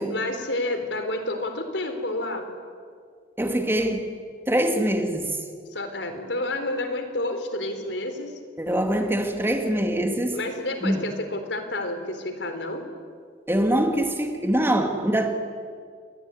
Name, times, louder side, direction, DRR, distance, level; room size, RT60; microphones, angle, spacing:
voice 1, 0.1-2.5 5.7-8.4 10.3-12.8, left 2 dB, 85° left, 7 dB, 4.1 m, -29 dB
voice 2, 3.4-4.1 4.5-5.4 8.6-10.4 10.8-11.1 13.5-15.3, right 1 dB, 15° right, 4 dB, 2.4 m, -24 dB
28.5 x 21.0 x 9.9 m, 2.1 s
head